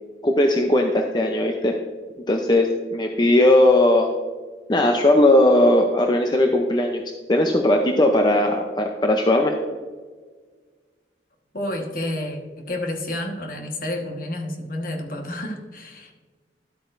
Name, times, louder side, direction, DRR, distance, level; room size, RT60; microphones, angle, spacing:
voice 1, 0.2-1.8 2.3-4.1 4.7-7.0 7.3-9.5, left 1 dB, 25° left, 3 dB, 0.6 m, -18 dB
voice 2, 11.5-12.4 12.7-16.1, left 1 dB, 50° left, 3 dB, 1.4 m, -30 dB
12.5 x 8.3 x 2.6 m, 1.5 s
head